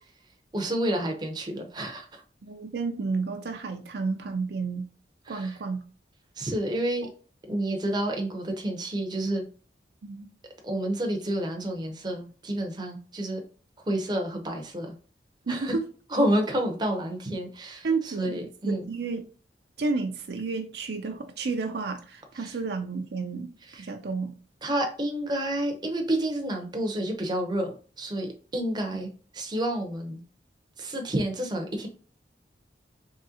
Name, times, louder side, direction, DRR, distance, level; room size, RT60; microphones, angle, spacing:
voice 1, 0.5-2.2 5.2-5.6 6.4-7.1 7.5-9.4 10.6-13.4 13.9-14.9 15.5-15.8 16.1-18.8 22.3-22.6 23.6-23.9 24.6-30.2 30.8-31.9, right 1 dB, 25° right, 0.7 m, -29 dB
voice 2, 2.4-4.9 5.3-5.8 10.0-10.3 15.5-15.8 17.8-18.4 18.6-19.2 19.8-23.5 23.9-24.3 28.9-29.1, right 4 dB, 65° right, 0.5 m, -31 dB
3.7 x 3.1 x 2.8 m
head